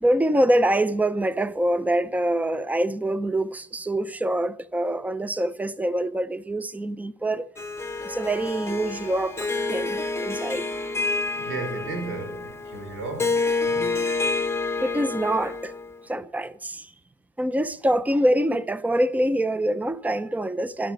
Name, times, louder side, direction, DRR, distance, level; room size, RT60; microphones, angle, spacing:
voice 1, 0.0-7.5 8.0-10.9 14.8-15.7 16.1-16.9 17.4-20.9, right 1 dB, 10° right, 0.7 m, -25 dB
Harp, 7.6-16.0, left 3 dB, 15° left, 1.4 m, -28 dB
voice 2, 11.3-14.1, right 3 dB, 85° right, 5.2 m, -35 dB
12.5 x 12.0 x 7.8 m
cardioid pair, 90°, 20 cm